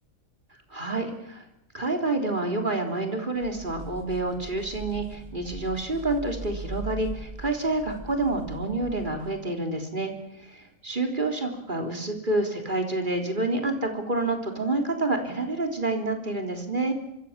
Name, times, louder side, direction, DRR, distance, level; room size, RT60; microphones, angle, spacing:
voice 1, 0.7-1.4 1.7-10.1 10.4-16.9, right 2 dB, 35° right, 4 dB, 3.8 m, -28 dB
sound 1, 3.4-9.4, right 2 dB, 20° right, 3.5 m, -40 dB
25.0 x 24.5 x 7.5 m, 0.84 s
omnidirectional pair, 1.4 m